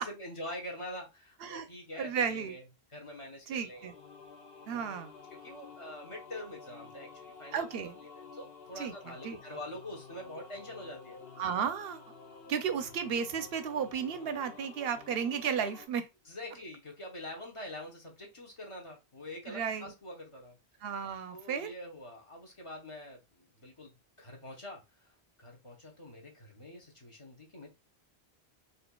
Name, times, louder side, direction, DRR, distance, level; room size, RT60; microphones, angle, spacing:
voice 1, 0.0-2.6 2.9-3.9 4.7-4.8 5.4-7.6 8.2-11.2 16.2-20.6 21.3-27.7, left 1 dB, 30° left, 0.9 m, -45 dB
voice 2, 2.0-2.5 3.5-3.9 4.7-5.1 7.5-8.0 8.8-9.4 11.4-12.1 12.5-16.1 19.5-19.9 20.8-21.7, right 7 dB, 70° right, 0.8 m, -34 dB
sound 1, 3.7-15.9, left 5 dB, 65° left, 1.0 m, -51 dB
4.4 x 2.6 x 2.2 m
omnidirectional pair, 1.1 m